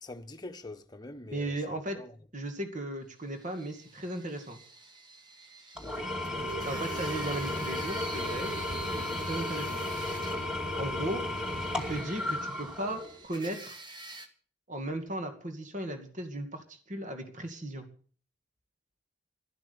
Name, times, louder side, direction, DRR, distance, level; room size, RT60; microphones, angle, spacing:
voice 1, 0.0-2.1 5.8-6.1, left 2 dB, 20° left, 1.3 m, -45 dB
voice 2, 1.3-2.0 2.3-4.6 6.6-8.5 8.9-9.8 10.8-11.2 11.8-13.8 14.7-17.9, right 1 dB, 40° right, 2.3 m, -36 dB
sound 1, 3.3-14.3, right 2 dB, 20° right, 1.9 m, -47 dB
Engine / Tools, 5.8-13.2, left 2 dB, 5° right, 2.3 m, -34 dB
sound 2, 6.3-12.0, right 4 dB, 70° right, 8.0 m, -44 dB
12.0 x 12.0 x 7.0 m
head